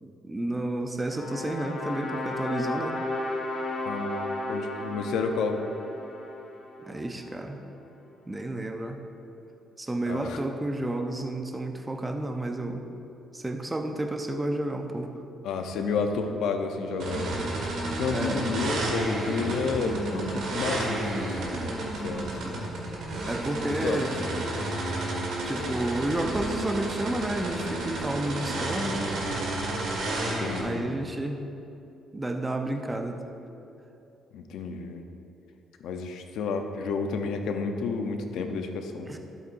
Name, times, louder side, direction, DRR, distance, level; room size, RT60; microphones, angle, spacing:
voice 1, 0.0-3.0 6.8-7.6 8.3-9.0 9.8-12.9 13.3-15.1 18.1-18.5 22.4-22.5 23.3-24.5 25.4-29.1 30.6-31.4 32.1-33.2 39.1-39.2, right 1 dB, 15° right, 4 dB, 0.7 m, -31 dB
sound 1, 1.1-7.3, left 2 dB, 50° left, 1.3 m, -34 dB
voice 2, 3.8-5.6 10.1-10.4 15.4-17.4 18.0-22.6 23.6-24.3 30.4-30.9 34.3-35.0 35.8-39.1, left 4 dB, 85° left, 5 dB, 0.7 m, -31 dB
sound 2, 17.0-30.6, right 2 dB, 80° right, 1.8 m, -31 dB
12.5 x 8.0 x 2.6 m, 2.8 s
cardioid pair, 90°, 0 cm